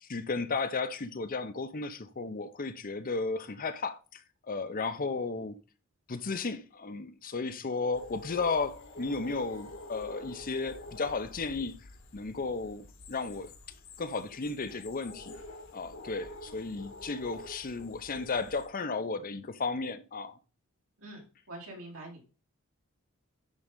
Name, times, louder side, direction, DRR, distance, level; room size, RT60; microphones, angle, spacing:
voice 1, 0.0-5.5 6.1-11.8 12.1-13.5 14.0-15.3 15.7-20.4, left 4 dB, 40° left, 0.7 m, -34 dB
sound 1, 7.9-18.7, left 2 dB, 65° left, 1.5 m, -47 dB
voice 2, 21.0-22.2, right 1 dB, 80° right, 3.4 m, -45 dB
10.5 x 3.9 x 3.7 m
head